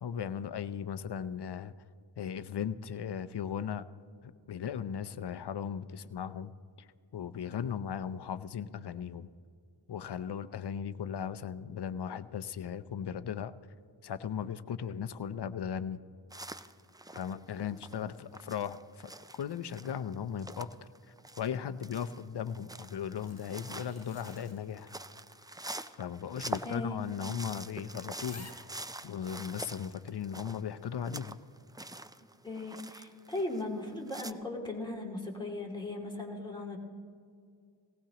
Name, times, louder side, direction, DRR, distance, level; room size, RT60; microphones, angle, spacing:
voice 1, 0.0-1.7 2.2-3.8 4.2-6.5 6.8-6.9 7.1-9.3 9.9-13.5 14.0-16.0 17.1-19.1 19.4-24.9 26.0-28.5 29.0-31.4, left 8 dB, 60° left, 13 dB, 0.6 m, -37 dB
sound 1, 16.3-21.6 21.8-33.8 34.1-34.3, right 2 dB, 10° right, 0.4 m, -45 dB
sound 2, 22.8-25.3 25.6-25.7 26.6-26.7 27.0-27.1 27.7-27.8 28.0-28.7 29.4-29.5, left 2 dB, 35° left, 1.8 m, -54 dB
voice 2, 32.4-36.8, left 2 dB, 10° left, -1 dB, 2.5 m, -38 dB
19.0 x 17.0 x 2.9 m, 2.3 s
wide cardioid pair, 65°, 45 cm